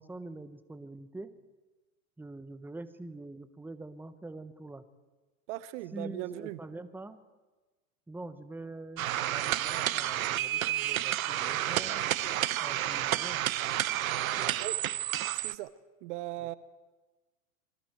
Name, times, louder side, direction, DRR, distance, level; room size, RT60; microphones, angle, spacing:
voice 1, 0.0-1.3 2.2-4.8 5.9-7.2 8.1-12.1 12.6-13.4 14.4-14.6 16.4-16.5, right 2 dB, 5° right, 12 dB, 1.2 m, -45 dB
voice 2, 5.5-6.6 14.6-14.8 15.3-15.7 16.0-16.5, right 17 dB, 60° right, 17 dB, 1.0 m, -38 dB
sound 1, 9.0-15.5, right 13 dB, 85° right, 0.8 m, -30 dB
26.5 x 23.0 x 4.6 m, 1.2 s
hypercardioid pair, 100°, 40 cm